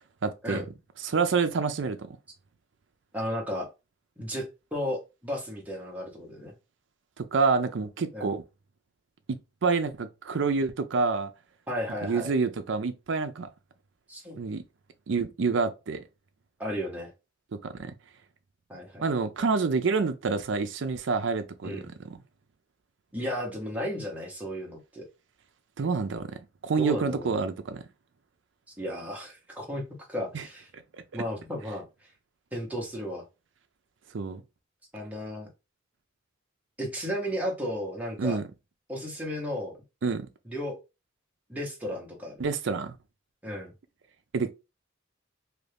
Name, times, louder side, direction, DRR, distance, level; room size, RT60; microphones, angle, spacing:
voice 1, 0.2-0.6 1.0-2.2 7.2-8.4 9.3-11.3 12.0-13.5 14.4-14.6 15.1-16.0 17.5-17.9 19.0-22.2 25.8-27.9 30.3-30.4 34.1-34.4 38.2-38.5 40.0-40.3 42.4-42.9 44.3-44.5, right 4 dB, 65° right, 0.5 m, -28 dB
voice 2, 3.1-3.7 4.2-4.5 4.7-6.5 8.1-8.3 11.7-12.3 14.1-14.4 16.6-17.1 18.7-19.0 21.6-21.9 23.1-25.0 26.8-27.5 28.8-29.8 30.1-30.7 31.1-31.8 32.5-33.2 34.9-35.5 36.8-38.4 38.9-39.8 40.4-40.8 41.5-42.4 43.4-43.7, equal, 10° right, 1.0 m, -34 dB
2.8 x 2.6 x 3.3 m
head